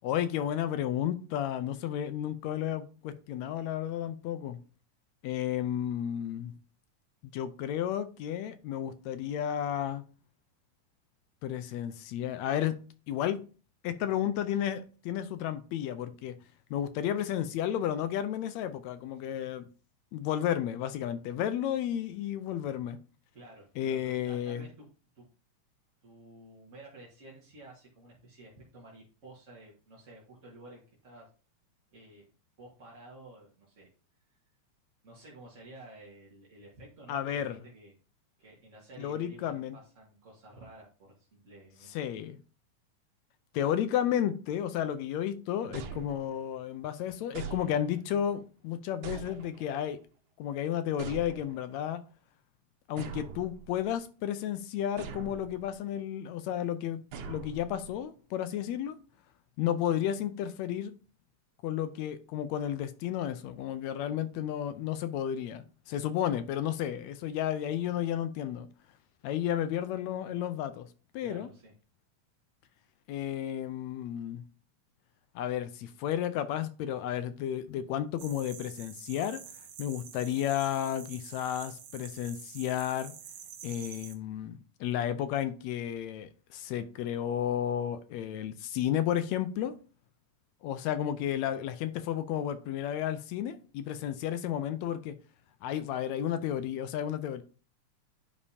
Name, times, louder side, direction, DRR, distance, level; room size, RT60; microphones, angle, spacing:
voice 1, 0.0-4.6 5.2-6.5 7.2-10.0 11.4-12.8 13.1-13.4 13.8-16.4 16.7-19.7 20.1-23.0 23.8-24.6 37.1-37.6 39.0-39.8 41.9-42.4 43.5-50.0 50.4-52.0 52.9-59.0 59.6-60.9 61.6-68.7 69.2-70.9 71.1-71.5 73.1-74.4 75.4-79.4 79.8-83.1 83.6-89.8 90.6-95.2 95.6-97.4, left 10 dB, 80° left, 1.8 m, -32 dB
voice 2, 23.3-24.9 25.1-25.3 26.0-31.3 31.9-32.3 32.6-33.9 35.0-37.9 38.4-42.2 71.2-71.7, right 2 dB, 35° right, 1.5 m, -52 dB
sound 1, 45.7-46.6 47.3-48.2 49.0-49.9 51.0-51.8 53.0-54.0 55.0-55.7 57.1-58.0, right 6 dB, 85° right, 2.4 m, -43 dB
sound 2, 78.2-84.2, right 8 dB, 65° right, 1.7 m, -47 dB
9.8 x 5.2 x 2.7 m
omnidirectional pair, 3.3 m